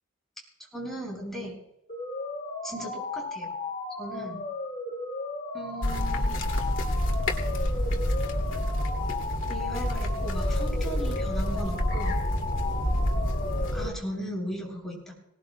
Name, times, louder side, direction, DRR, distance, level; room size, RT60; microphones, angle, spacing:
voice 1, 0.6-1.6 2.6-3.5 4.0-4.5 5.5-6.4 9.5-12.2 13.7-15.1, equal, ahead, -3 dB, 7.5 m, -37 dB
sound 1, 1.9-13.9, left 3 dB, 35° left, 3.7 m, -35 dB
sound 2, 5.8-13.9, left 1 dB, 70° left, 2.4 m, -28 dB
26.0 x 19.0 x 2.2 m, 0.87 s
head